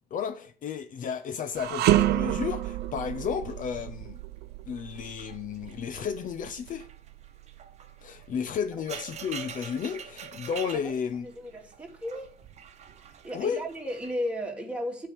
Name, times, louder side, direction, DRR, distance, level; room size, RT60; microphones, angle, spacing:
voice 1, 0.1-4.2 4.7-6.9 8.0-11.3 13.3-13.6, left 7 dB, 50° left, 0.7 m, -33 dB
sound 1, 1.3-3.7 4.0-4.4 4.8-14.1, right 7 dB, 40° right, 1.1 m, -46 dB
sound 2, 1.5-10.8 11.2-11.4 12.3-13.1, right 14 dB, 75° right, 0.6 m, -31 dB
voice 2, 11.2-12.4 13.0-15.1, equal, 5° right, 2.3 m, -35 dB
8.7 x 4.8 x 6.9 m
cardioid pair, 110°, 17 cm